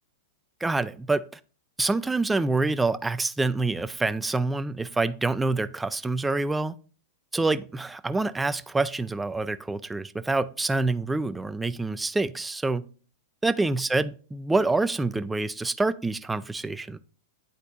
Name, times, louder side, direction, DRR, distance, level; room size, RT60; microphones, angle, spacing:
voice 1, 0.6-1.3 1.8-6.7 7.3-12.9 13.4-17.0, right 3 dB, 10° right, 0.4 m, -26 dB
10.0 x 4.0 x 2.5 m
hypercardioid pair, 110°, 0 cm